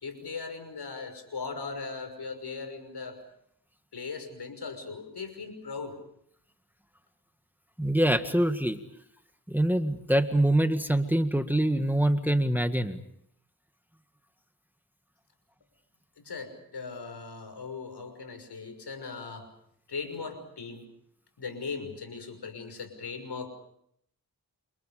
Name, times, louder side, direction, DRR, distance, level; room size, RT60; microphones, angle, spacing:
voice 1, 0.0-3.2 3.9-6.0 16.2-19.5 19.9-20.9 21.4-23.5, left 4 dB, 80° left, 7 dB, 6.1 m, -39 dB
voice 2, 7.8-8.8 9.5-13.0, right 1 dB, 5° right, 8 dB, 1.8 m, -25 dB
29.0 x 28.0 x 5.1 m, 0.71 s
cardioid pair, 70°, 39 cm